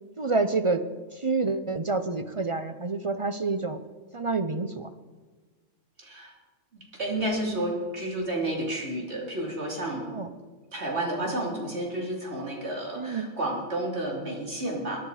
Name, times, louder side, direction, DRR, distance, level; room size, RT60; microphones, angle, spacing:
voice 1, 0.2-0.8 1.2-3.8 4.1-4.9 9.9-10.3 13.0-13.3, right 3 dB, 40° right, 9 dB, 0.5 m, -28 dB
voice 2, 6.0-6.3 6.7-10.1 10.7-15.0, right 1 dB, 55° right, -1 dB, 3.5 m, -31 dB
22.5 x 10.0 x 4.9 m, 1.4 s
omnidirectional pair, 1.4 m